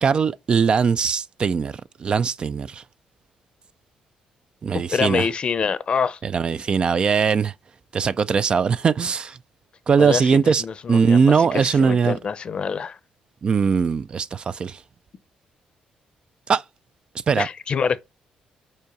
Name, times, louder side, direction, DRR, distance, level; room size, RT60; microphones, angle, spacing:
voice 1, 0.0-2.8 4.6-5.3 6.2-7.5 7.9-9.4 9.9-12.2 13.4-14.8 16.5-16.6 17.3-17.5, right 6 dB, 40° right, 0.3 m, -20 dB
voice 2, 4.7-6.2 10.0-13.0 17.4-18.0, left 6 dB, 45° left, 0.7 m, -26 dB
5.5 x 4.6 x 5.1 m
cardioid pair, 100°, 3 cm